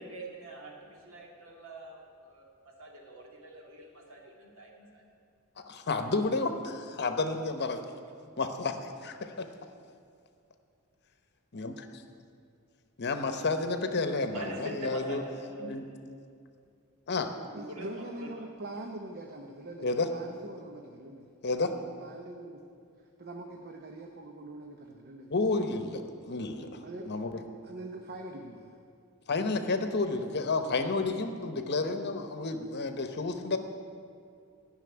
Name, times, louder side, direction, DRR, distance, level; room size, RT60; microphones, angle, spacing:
voice 1, 0.0-5.0 14.3-16.0 17.7-18.5, right 1 dB, 65° right, 0 dB, 2.3 m, -44 dB
voice 2, 5.6-7.8 8.4-9.4 11.6-11.7 13.0-15.2 15.6-15.8 17.1-17.3 19.8-20.1 21.4-21.7 25.3-26.8 27.1-27.4 29.3-33.6, left 3 dB, 50° left, 7 dB, 0.9 m, -31 dB
voice 3, 17.5-21.3 21.6-22.6 23.2-25.7 26.8-27.1 27.6-28.8, right 1 dB, 45° right, 3 dB, 0.8 m, -43 dB
13.0 x 6.4 x 9.6 m, 2.3 s
head